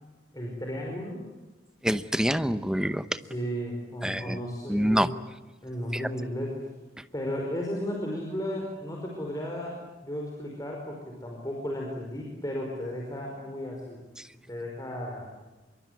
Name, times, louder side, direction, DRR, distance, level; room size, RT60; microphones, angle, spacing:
voice 1, 0.3-1.3 3.2-5.1 5.6-6.5 7.1-9.7 10.0-14.0 14.5-15.3, equal, 20° left, -1 dB, 4.9 m, -34 dB
voice 2, 1.8-3.1 4.0-4.4 4.7-5.1 5.9-6.0 14.2-14.3, equal, 5° right, 12 dB, 0.8 m, -26 dB
25.5 x 23.5 x 9.6 m, 1.1 s
head